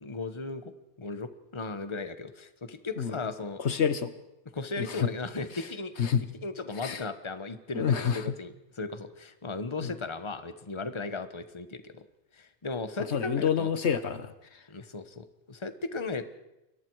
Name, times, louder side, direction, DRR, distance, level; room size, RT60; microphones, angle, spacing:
voice 1, 0.0-0.7 1.0-3.6 4.5-6.1 6.4-12.0 12.3-13.7 14.7-16.3, left 3 dB, 25° left, 10 dB, 1.2 m, -36 dB
voice 2, 3.6-4.1 4.8-5.1 6.0-6.2 6.8-7.0 7.7-8.2 9.8-9.9 13.1-14.3, left 7 dB, 70° left, 12 dB, 1.3 m, -27 dB
29.5 x 22.5 x 4.8 m, 0.92 s
omnidirectional pair, 1.2 m